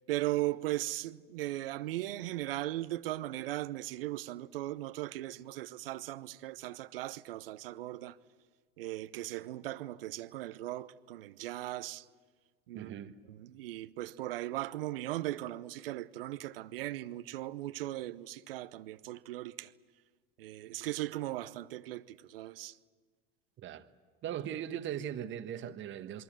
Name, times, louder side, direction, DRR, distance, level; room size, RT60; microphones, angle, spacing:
voice 1, 0.1-8.2 8.8-12.1 12.7-12.9 13.3-19.7 20.4-22.8, right 16 dB, 70° right, 0.9 m, -38 dB
voice 2, 12.7-13.1 23.6-23.9 24.2-26.2, right 10 dB, 40° right, 1.3 m, -39 dB
27.5 x 22.5 x 7.7 m
hypercardioid pair, 80°, 29 cm